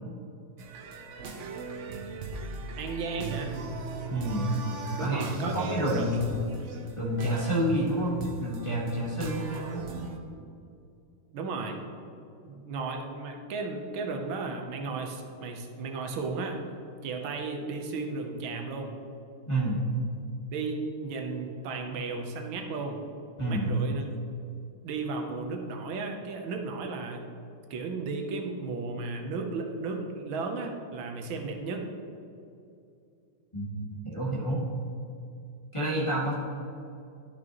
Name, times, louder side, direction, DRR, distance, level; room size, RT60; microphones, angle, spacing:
sound 1, 0.6-10.2, right 3 dB, 70° right, 0.7 m, -38 dB
voice 1, 2.8-3.5 5.0-6.2 11.3-11.8 12.4-16.6 17.0-18.9 20.5-23.0 23.5-24.1 24.8-27.2 27.7-31.8, right 3 dB, 90° right, 3 dB, 1.7 m, -34 dB
voice 2, 4.1-4.5 5.0-6.4 7.0-9.8 19.5-19.8 23.4-23.7 33.5-34.6 35.7-36.4, right 1 dB, 15° left, -7 dB, 1.7 m, -29 dB
12.0 x 6.2 x 3.0 m, 2.6 s
omnidirectional pair, 2.1 m